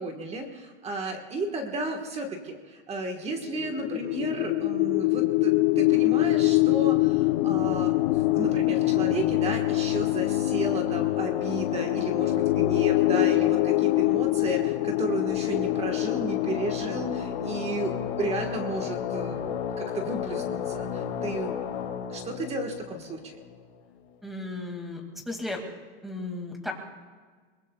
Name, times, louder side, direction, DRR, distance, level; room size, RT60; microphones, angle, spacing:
voice 1, 0.0-7.9 8.3-21.6 21.9-23.3, right 2 dB, 20° right, 4 dB, 1.4 m, -33 dB
sound 1, 3.4-18.4, left 22 dB, 45° left, 0.6 m, -25 dB
sound 2, 5.8-24.0, left 8 dB, 65° left, 2.1 m, -33 dB
voice 2, 24.2-25.6 26.0-26.7, left 2 dB, ahead, 3 dB, 2.2 m, -35 dB
23.0 x 21.5 x 2.3 m, 1.5 s
supercardioid pair, 150°, 33 cm